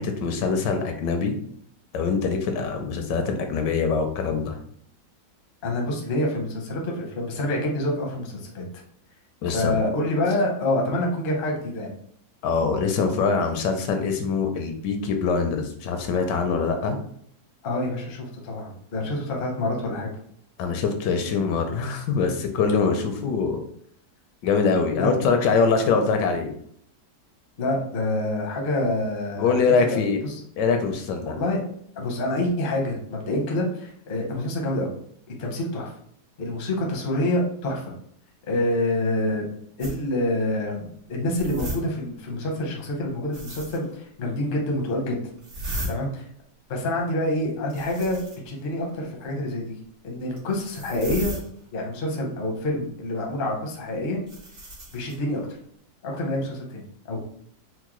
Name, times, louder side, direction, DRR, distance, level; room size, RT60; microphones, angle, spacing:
voice 1, 0.0-1.3 1.9-4.5 9.4-9.8 12.4-17.0 20.6-23.6 24.4-26.5 29.4-30.2 30.6-31.4, left 5 dB, 80° left, 5 dB, 1.2 m, -23 dB
voice 2, 5.6-8.6 9.5-11.9 17.6-20.1 24.9-25.1 27.6-29.5 29.8-30.4 31.3-31.6 32.0-34.9 35.4-35.9 36.4-37.8 38.5-39.5 39.8-45.2 45.9-46.3 46.7-49.7 50.0-51.3 51.7-54.2 54.9-55.4 56.0-56.8 57.1-57.2, left 1 dB, 50° left, 0 dB, 0.7 m, -27 dB
sound 1, 39.8-40.0 41.4-41.8 43.3-43.9 45.4-45.9 47.7-48.5 50.4-51.5 54.3-55.2, right 1 dB, 70° right, 2.0 m, -35 dB
4.5 x 2.1 x 3.0 m, 0.66 s
omnidirectional pair, 1.9 m